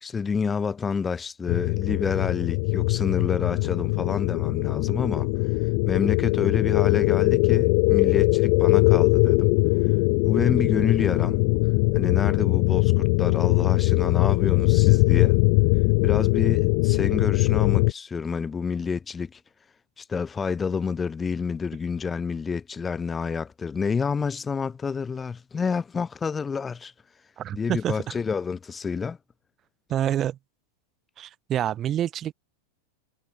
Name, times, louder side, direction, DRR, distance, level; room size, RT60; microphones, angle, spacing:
voice 1, 0.0-5.3 5.8-9.5 10.2-11.4 11.9-15.4 16.0-19.4 20.0-26.9 27.5-29.2, left 5 dB, 10° left, 1.3 m, -28 dB
sound 1, 1.5-17.9, left 35 dB, 40° left, 0.7 m, -21 dB
voice 2, 27.4-28.0 29.9-30.4 31.2-32.3, right 11 dB, 20° right, 0.3 m, -27 dB
supercardioid pair, 175°, 0 cm